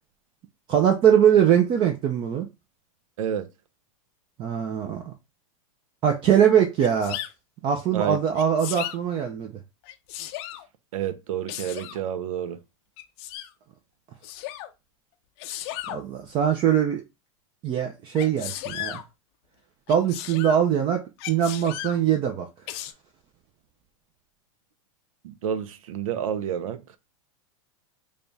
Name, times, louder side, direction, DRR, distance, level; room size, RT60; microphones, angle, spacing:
voice 1, 0.7-2.5 4.4-5.1 6.0-7.2 7.6-9.5 15.9-17.0 17.6-19.0 19.9-21.0 21.3-22.5, right 9 dB, 30° right, 0.5 m, -22 dB
voice 2, 3.2-3.5 7.9-8.2 10.9-12.6 25.2-26.8, right 9 dB, 80° right, 0.6 m, -29 dB
Sneeze, 6.8-7.3 8.3-9.0 9.8-10.6 11.5-12.0 13.0-13.5 14.2-14.7 15.4-16.0 18.2-19.0 19.9-20.6 21.2-22.0 22.7-22.9, left 13 dB, 50° left, 0.5 m, -35 dB
3.3 x 2.3 x 4.0 m
supercardioid pair, 140°, 17 cm